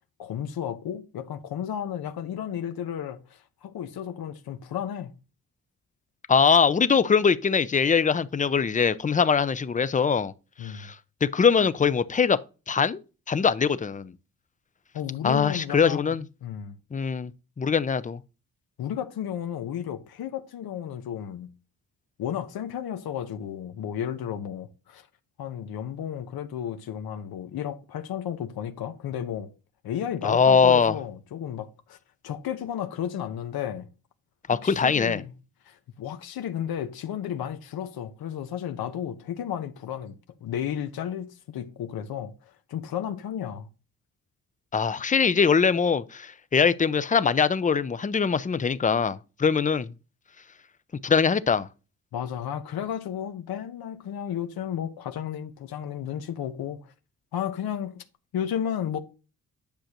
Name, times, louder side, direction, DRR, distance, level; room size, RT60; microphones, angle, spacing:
voice 1, 0.2-5.1 10.6-10.9 14.9-16.8 18.8-21.5 22.2-25.1 25.4-29.5 29.8-32.0 32.2-33.9 34.6-35.3 35.6-40.1 40.4-42.3 42.7-43.7 52.1-56.9 57.3-58.0 58.3-59.0, left 9 dB, 90° left, 1.1 m, -33 dB
voice 2, 6.3-10.3 10.6-10.9 11.2-12.4 12.7-13.0 13.3-14.1 15.2-16.2 16.9-17.3 17.6-18.2 30.2-30.9 34.5-35.2 44.7-49.9 51.0-51.7, left 6 dB, 20° left, 0.5 m, -22 dB
10.5 x 6.5 x 2.9 m
cardioid pair, 125°, 36 cm